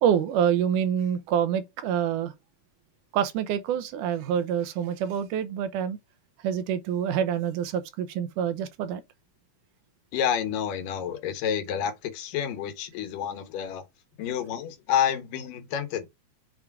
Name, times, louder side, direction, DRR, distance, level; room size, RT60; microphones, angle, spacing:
voice 1, 0.0-2.3 3.1-6.0 6.4-9.0, right 9 dB, 80° right, 2.2 m, -26 dB
voice 2, 10.1-13.8 14.2-16.1, left 9 dB, 85° left, 2.8 m, -29 dB
6.6 x 3.6 x 4.7 m
omnidirectional pair, 3.7 m